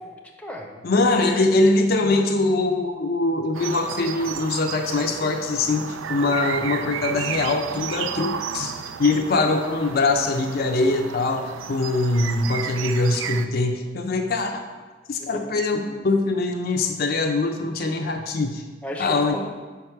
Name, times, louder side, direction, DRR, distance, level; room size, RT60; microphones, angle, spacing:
voice 1, 0.0-1.1 15.3-15.5 15.7-16.0 18.8-19.4, left 1 dB, 5° left, 0 dB, 0.6 m, -35 dB
voice 2, 0.8-8.7 9.0-14.6 15.1-18.6 19.0-19.3, left 2 dB, 50° left, 3 dB, 0.5 m, -22 dB
sound 1, 3.5-13.5, right 7 dB, 75° right, 0.4 m, -33 dB
5.4 x 4.6 x 5.6 m, 1.3 s
head